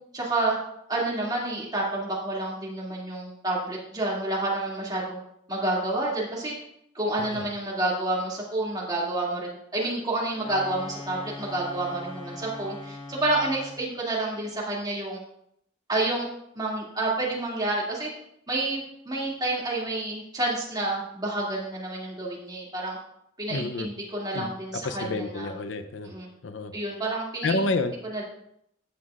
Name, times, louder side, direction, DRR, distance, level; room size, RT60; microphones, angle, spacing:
voice 1, 0.1-0.6 0.9-5.2 5.5-6.6 6.9-15.2 15.9-16.3 16.5-18.1 18.5-23.0 23.4-25.5 26.0-26.3 26.7-27.6 28.1-28.2, right 2 dB, 20° right, -4 dB, 2.4 m, -29 dB
sound 1, 10.3-13.9, left 2 dB, 30° left, 1.2 m, -41 dB
voice 2, 23.5-23.9 24.3-26.1 26.4-26.7 27.4-27.9, left 2 dB, 80° left, 10 dB, 0.6 m, -29 dB
15.5 x 5.8 x 2.5 m, 0.75 s
head